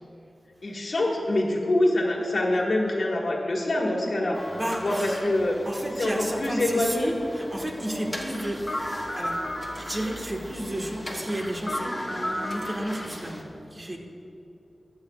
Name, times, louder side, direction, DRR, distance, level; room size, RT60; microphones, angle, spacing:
voice 1, 0.6-4.4 4.8-5.6 6.0-7.1, left 1 dB, 60° left, -1 dB, 1.7 m, -25 dB
sound 1, 4.3-13.4, left 1 dB, 5° left, 1.3 m, -35 dB
voice 2, 4.5-5.2 5.6-9.4 9.8-13.4 13.7-14.0, right 1 dB, 30° right, 0 dB, 1.4 m, -32 dB
21.5 x 8.3 x 2.4 m, 2.8 s
wide cardioid pair, 110°, 0 cm